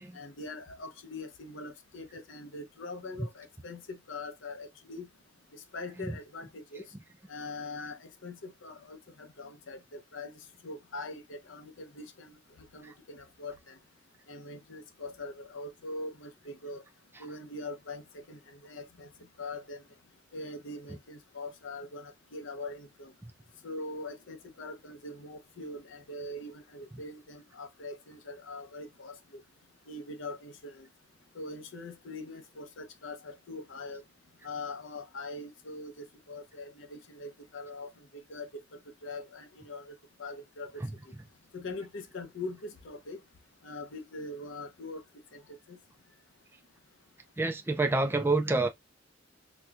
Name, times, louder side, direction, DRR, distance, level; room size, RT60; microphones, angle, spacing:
voice 1, 0.1-5.1 5.5-6.9 7.3-10.3 10.6-13.8 14.3-16.8 17.2-19.1 19.4-19.8 20.3-23.1 23.6-29.2 29.9-30.9 31.3-34.0 34.4-38.5 39.0-39.9 40.2-40.7 41.5-43.2 43.6-45.0 45.3-45.8, left 2 dB, 85° left, 0.7 m, -42 dB
voice 2, 47.4-48.7, right 3 dB, 10° right, 0.3 m, -27 dB
4.2 x 2.2 x 2.3 m
head